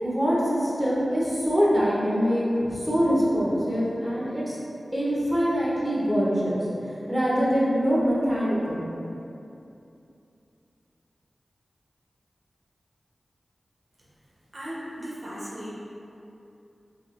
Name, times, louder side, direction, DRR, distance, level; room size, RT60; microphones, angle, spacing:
voice 1, 0.0-4.6 4.9-6.6 7.1-8.8, equal, 5° right, -8 dB, 0.7 m, -24 dB
voice 2, 14.5-15.8, equal, 45° right, -7 dB, 0.6 m, -36 dB
3.2 x 2.3 x 2.3 m, 2.7 s
cardioid pair, 55°, 0 cm